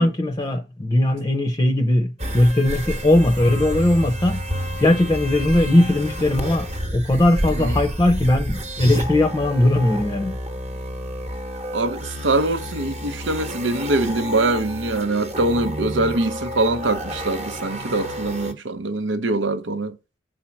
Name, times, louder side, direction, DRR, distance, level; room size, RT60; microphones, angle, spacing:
voice 1, 0.0-4.4 4.8-10.4, left 1 dB, 20° left, 0.6 m, -19 dB
sound 1, 2.2-18.5, equal, 35° right, 1.0 m, -30 dB
voice 2, 11.7-20.0, right 2 dB, 90° right, 0.8 m, -23 dB
6.4 x 4.4 x 5.8 m
head